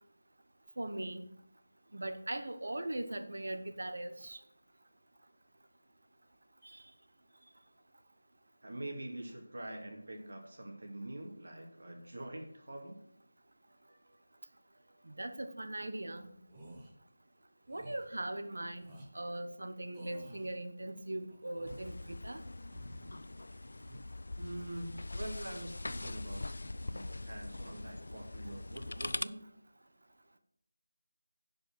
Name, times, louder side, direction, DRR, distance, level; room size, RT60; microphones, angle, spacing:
voice 1, 0.8-1.2 1.9-4.4 6.6-6.8 15.1-16.3 17.7-18.9 19.1-21.9 22.2-22.4, right 1 dB, 70° right, 8 dB, 1.1 m, -40 dB
voice 2, 8.6-13.0 24.4-29.5, right 1 dB, 55° right, 1 dB, 2.2 m, -45 dB
sound 1, 16.5-16.9 17.7-18.1 18.8-19.1 19.9-20.6 21.3-22.0 22.6-23.3 23.6-24.0, right 1 dB, 10° right, 1.0 m, -52 dB
sound 2, 21.7-29.2, left 2 dB, 60° left, 0.4 m, -42 dB
10.5 x 5.2 x 6.1 m, 0.68 s
figure-of-eight pair, 180°, 0 cm